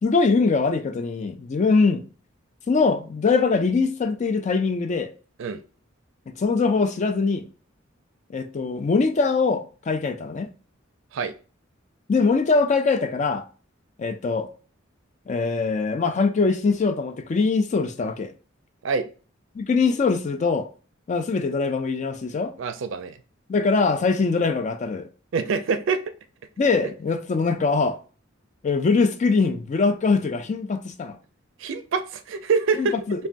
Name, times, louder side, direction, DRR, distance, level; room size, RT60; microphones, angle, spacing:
voice 1, 0.0-2.0 2.7-5.1 6.3-7.5 8.3-10.5 12.1-13.4 14.0-14.5 15.3-18.3 19.6-20.7 21.1-22.5 23.5-25.1 26.6-28.0 28.6-31.2 32.8-33.3, left 4 dB, 35° left, 0.4 m, -22 dB
voice 2, 22.6-23.2 25.3-26.0 31.6-32.9 33.2-33.3, right 5 dB, 65° right, 0.4 m, -25 dB
3.3 x 2.2 x 2.5 m
head